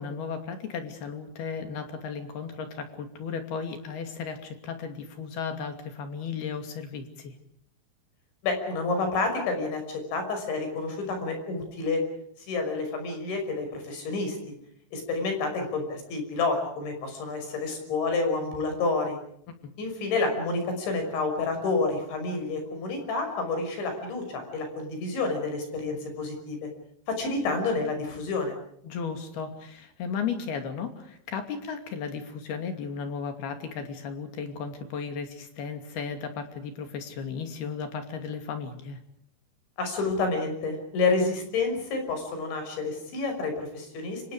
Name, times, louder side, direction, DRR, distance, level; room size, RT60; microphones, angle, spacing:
voice 1, 0.0-7.4 19.6-19.7 28.8-39.0, left 6 dB, 60° left, 6 dB, 4.5 m, -35 dB
voice 2, 8.4-12.0 12.4-14.4 14.9-19.2 19.8-26.7 27.1-28.5 39.8-44.2, left 3 dB, 80° left, 5 dB, 8.2 m, -29 dB
29.5 x 26.0 x 5.0 m, 0.68 s
omnidirectional pair, 5.2 m